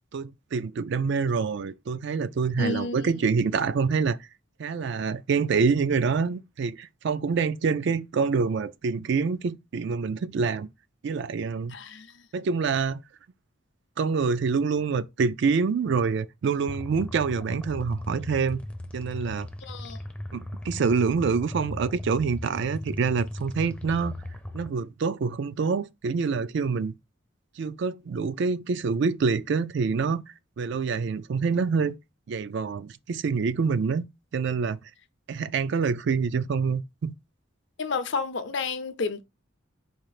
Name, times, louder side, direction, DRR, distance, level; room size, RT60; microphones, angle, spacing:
voice 1, 0.1-4.2 4.6-10.7 11.0-11.8 12.3-13.0 14.0-18.6 18.9-19.5 20.3-24.1 24.5-27.0 27.6-30.2 30.6-31.9 32.3-34.1 34.3-34.8 35.3-37.1, right 5 dB, 60° right, 0.4 m, -26 dB
voice 2, 2.6-3.1 11.7-12.1 19.6-20.0 37.8-39.2, left 4 dB, 60° left, 0.6 m, -30 dB
sound 1, 16.7-24.7, left 1 dB, 5° left, 0.5 m, -37 dB
4.3 x 2.5 x 4.8 m
head